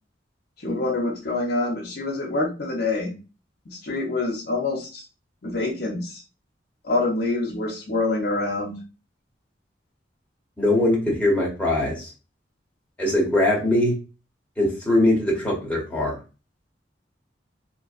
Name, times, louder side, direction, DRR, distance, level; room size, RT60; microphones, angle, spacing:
voice 1, 0.6-3.1 3.7-5.0 5.4-6.2 6.8-8.8, left 2 dB, 60° left, 0 dB, 0.7 m, -26 dB
voice 2, 10.6-12.1 13.0-13.9 14.6-16.1, left 1 dB, 10° left, -3 dB, 0.9 m, -21 dB
2.5 x 2.2 x 2.4 m, 0.31 s
head